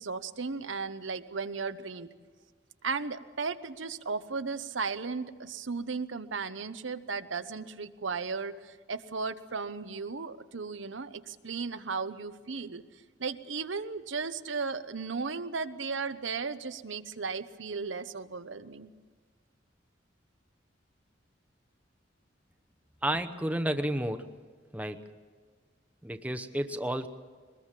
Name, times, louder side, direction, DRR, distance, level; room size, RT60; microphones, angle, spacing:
voice 1, 0.0-2.1 2.8-12.8 13.2-18.9, right 4 dB, 80° right, 10 dB, 0.9 m, -35 dB
voice 2, 23.0-24.3 24.7-25.0 26.0-27.1, right 1 dB, 10° right, 8 dB, 0.9 m, -31 dB
23.0 x 20.5 x 7.5 m, 1.6 s
head